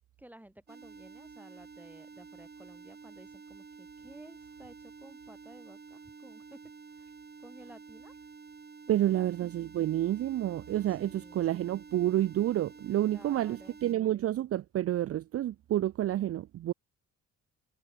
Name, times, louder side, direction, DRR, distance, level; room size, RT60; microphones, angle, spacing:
voice 1, 0.0-6.6 6.9-7.1 7.4-8.1 8.9-9.4 10.8-11.5 13.1-13.8, right 1 dB, 5° right, 3.8 m, -54 dB
sound 1, 0.7-13.9, right 5 dB, 30° right, 4.3 m, -50 dB
voice 2, 8.9-16.7, right 13 dB, 50° right, 0.5 m, -29 dB
cardioid pair, 90°, 30 cm